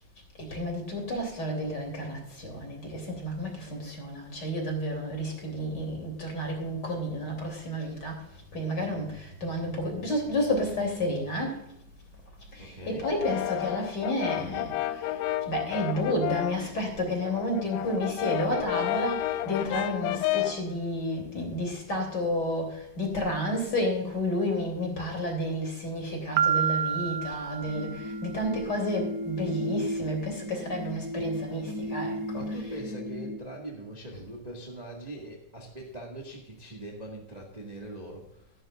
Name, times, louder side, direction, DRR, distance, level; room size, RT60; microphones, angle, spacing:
voice 1, 0.4-8.2 8.5-11.6 12.5-15.2 15.5-32.4, left 1 dB, 30° left, 2 dB, 3.5 m, -31 dB
voice 2, 12.6-13.1 17.8-18.0 32.3-38.5, right 1 dB, 15° right, -1 dB, 1.4 m, -42 dB
Brass instrument, 13.0-16.7 17.0-20.7, left 14 dB, 80° left, 2.0 m, -31 dB
Piano, 26.4-28.3, right 8 dB, 85° right, 2.3 m, -28 dB
sound 1, 27.7-33.4, equal, 50° left, 3.9 m, -35 dB
14.5 x 11.0 x 2.5 m, 0.79 s
omnidirectional pair, 3.8 m